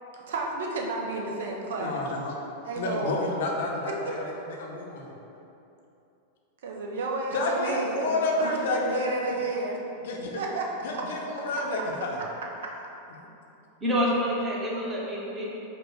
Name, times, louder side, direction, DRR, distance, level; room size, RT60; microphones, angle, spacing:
voice 1, 0.3-2.0 2.6-3.3 4.0-4.1 6.6-9.8 10.4-10.7 10.9-11.0, right 3 dB, 60° right, -1 dB, 0.5 m, -31 dB
voice 2, 1.8-2.3 2.8-5.1 7.3-9.4 10.0-10.4 10.8-12.2, left 2 dB, 55° left, -1 dB, 0.6 m, -30 dB
voice 3, 13.8-15.4, equal, 20° right, -5 dB, 1.0 m, -27 dB
5.0 x 2.3 x 4.5 m, 2.8 s
figure-of-eight pair, 90°, 0 cm